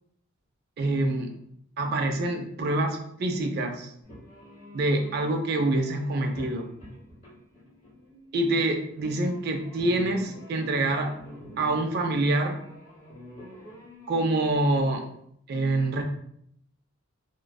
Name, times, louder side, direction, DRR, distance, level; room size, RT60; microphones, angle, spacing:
voice 1, 0.8-1.3 1.8-3.9 4.7-6.7 8.3-11.2 11.6-12.6 14.1-15.0 15.5-16.0, right 2 dB, 45° right, 4 dB, 0.3 m, -26 dB
sound 1, 4.0-15.0, equal, 30° left, 1.3 m, -47 dB
2.5 x 2.2 x 2.2 m, 0.70 s
head